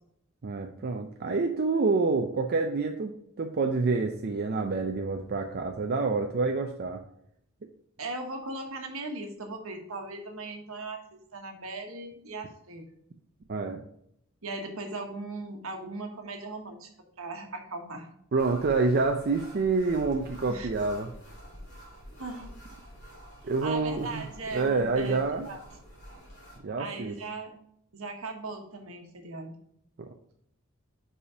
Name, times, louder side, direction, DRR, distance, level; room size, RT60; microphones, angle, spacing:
voice 1, 0.4-7.0 13.5-13.8 18.3-21.1 23.4-24.2 24.5-25.5 26.6-27.2, right 3 dB, 45° right, 4 dB, 0.5 m, -27 dB
voice 2, 8.0-13.0 14.4-16.9 17.2-18.1 20.5-20.7 22.2-22.5 23.4-25.6 26.8-27.6 27.9-29.6, right 2 dB, 70° right, 4 dB, 1.3 m, -38 dB
sound 1, 18.4-26.6, equal, 50° left, 2.3 m, -48 dB
5.2 x 4.9 x 4.9 m, 0.72 s
head